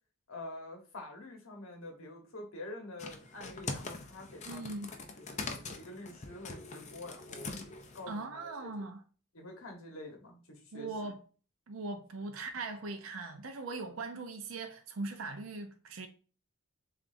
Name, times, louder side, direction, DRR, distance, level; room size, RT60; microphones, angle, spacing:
voice 1, 0.3-4.8 5.3-7.5 7.9-8.9 9.3-10.9, left 2 dB, 75° left, 1.2 m, -47 dB
sound 1, 3.0-8.1, left 3 dB, 35° left, 0.5 m, -43 dB
voice 2, 4.5-4.9 8.1-9.0 10.7-11.2 11.7-16.1, right 3 dB, 70° right, 0.5 m, -40 dB
7.0 x 2.5 x 2.6 m
head